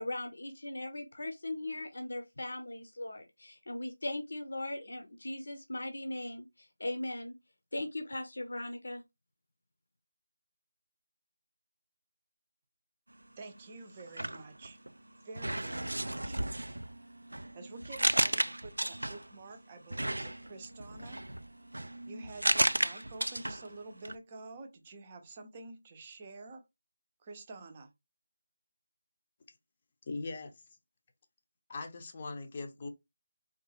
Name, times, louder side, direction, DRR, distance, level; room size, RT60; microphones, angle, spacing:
voice 1, 0.0-7.3 7.7-9.0, left 1 dB, 65° left, 0.7 m, -39 dB
voice 2, 13.4-14.8 15.2-16.4 17.5-21.2 22.1-26.7 27.2-27.9, right 3 dB, 25° right, 0.6 m, -49 dB
sound 1, 14.0-15.0 15.3-19.4 19.9-23.8 24.0-24.2, right 1 dB, 90° right, 0.3 m, -33 dB
voice 3, 30.1-30.5 31.7-32.9, left 3 dB, 30° left, 0.6 m, -40 dB
3.6 x 2.3 x 2.8 m
figure-of-eight pair, 165°, 0 cm